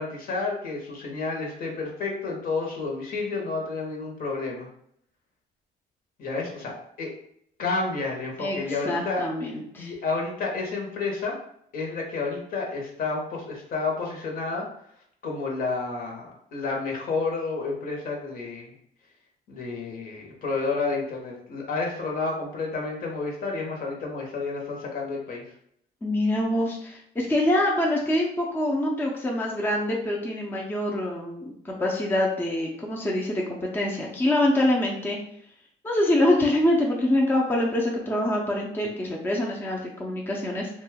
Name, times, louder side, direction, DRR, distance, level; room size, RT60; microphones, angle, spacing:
voice 1, 0.0-4.7 6.2-7.1 7.6-9.2 9.8-11.4 11.7-14.6 15.2-18.7 19.5-25.5, left 3 dB, 55° left, 0 dB, 0.9 m, -30 dB
voice 2, 8.4-9.9 26.0-35.2 35.8-40.7, left 1 dB, 10° left, -2 dB, 0.5 m, -25 dB
2.6 x 2.2 x 3.4 m, 0.69 s
cardioid pair, 110°, 17 cm